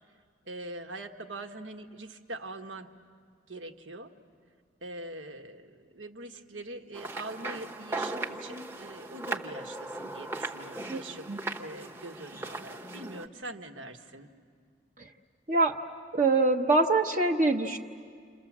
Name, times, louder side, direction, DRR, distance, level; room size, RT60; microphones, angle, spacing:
voice 1, 0.4-2.9 3.5-4.1 4.8-11.3 11.6-14.3, right 2 dB, 80° right, 4 dB, 1.5 m, -43 dB
sound 1, 6.9-13.3, right 2 dB, 10° right, 0.9 m, -38 dB
voice 2, 16.1-17.8, right 3 dB, 40° right, 1 dB, 1.0 m, -24 dB
29.0 x 28.0 x 7.3 m, 2.1 s
head